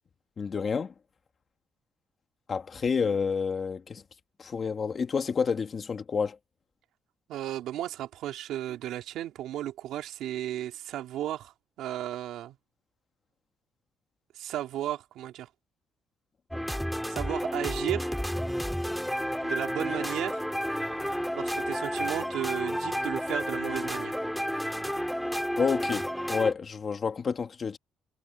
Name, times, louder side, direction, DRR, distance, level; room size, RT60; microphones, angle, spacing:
voice 1, 0.4-0.9 2.5-4.0 4.4-6.4 25.6-27.8, left 5 dB, 30° left, 1.8 m, -29 dB
voice 2, 7.3-12.6 14.3-15.5 17.1-18.1 19.4-20.4 21.3-24.2, right 12 dB, 80° right, 3.2 m, -34 dB
sound 1, 16.5-26.5, equal, ahead, 2.3 m, -31 dB
cardioid pair, 175°, 0 cm